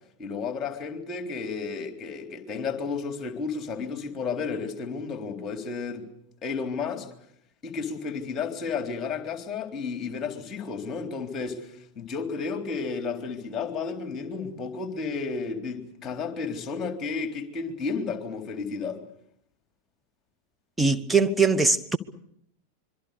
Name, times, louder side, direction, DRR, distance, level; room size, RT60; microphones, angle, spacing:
voice 1, 0.2-6.0 6.4-7.1 7.6-19.0, left 5 dB, 25° left, 3.8 m, -32 dB
voice 2, 20.8-22.0, right 4 dB, 5° right, 1.2 m, -21 dB
25.5 x 23.5 x 6.8 m
figure-of-eight pair, 90°, 0 cm